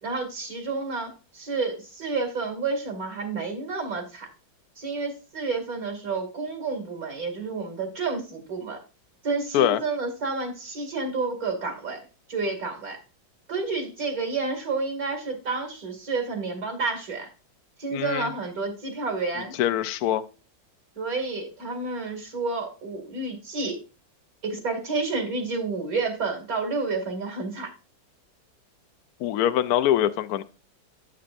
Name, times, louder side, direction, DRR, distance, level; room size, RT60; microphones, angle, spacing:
voice 1, 0.0-4.3 4.8-8.8 9.2-13.0 13.5-17.3 17.8-19.5 21.0-23.8 24.4-27.7, right 3 dB, 45° right, 2.8 m, -30 dB
voice 2, 17.9-18.3 19.6-20.2 29.2-30.4, left 11 dB, 70° left, 0.9 m, -23 dB
9.3 x 8.5 x 2.6 m
omnidirectional pair, 2.1 m